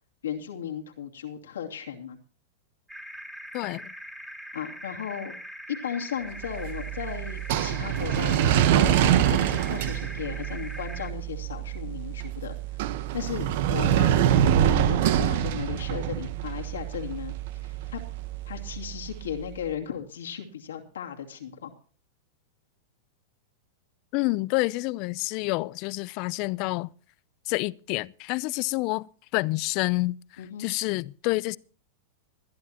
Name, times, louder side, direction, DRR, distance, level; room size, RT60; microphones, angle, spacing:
voice 1, 0.2-2.2 4.5-5.3 5.7-12.6 13.1-17.3 17.6-18.0 18.5-21.7 30.4-30.7, left 8 dB, 85° left, 2.6 m, -36 dB
sound 1, 2.9-11.1, equal, 5° right, 2.5 m, -42 dB
voice 2, 3.5-3.9 24.1-26.9 27.5-30.2 30.6-31.6, left 23 dB, 50° left, 0.5 m, -28 dB
sound 2, 6.4-19.5, right 10 dB, 65° right, 1.1 m, -26 dB
21.0 x 11.5 x 2.9 m
hypercardioid pair, 115°, 0 cm